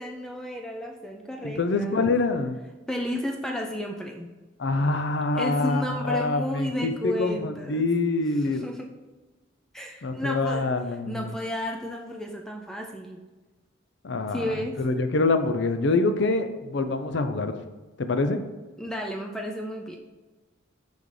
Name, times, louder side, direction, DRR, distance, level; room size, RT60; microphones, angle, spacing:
voice 1, 0.0-2.0 2.9-4.3 5.3-7.8 8.3-8.9 9.7-10.7 11.1-13.2 14.3-14.8 18.8-20.0, equal, 5° left, 1 dB, 0.4 m, -33 dB
voice 2, 1.4-2.6 4.6-8.7 10.0-11.3 14.0-17.5 18.0-18.4, left 3 dB, 60° left, 8 dB, 0.5 m, -25 dB
5.9 x 5.3 x 3.2 m, 1.2 s
head